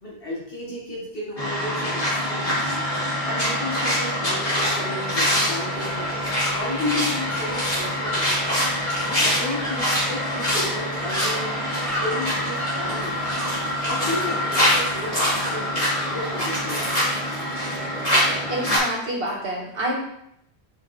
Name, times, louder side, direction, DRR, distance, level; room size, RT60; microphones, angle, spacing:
voice 1, 0.0-2.7 3.2-8.4 9.1-11.6 11.9-13.3 13.9-16.9 17.5-17.6, left 1 dB, 60° left, -6 dB, 2.5 m, -33 dB
sound 1, 1.4-18.8, equal, 35° left, 3.0 m, -24 dB
sound 2, 5.7-16.8, left 1 dB, 15° left, 1.3 m, -35 dB
voice 2, 18.5-19.9, right 1 dB, 60° right, -3 dB, 2.1 m, -28 dB
6.0 x 4.9 x 4.3 m, 0.74 s
omnidirectional pair, 1.1 m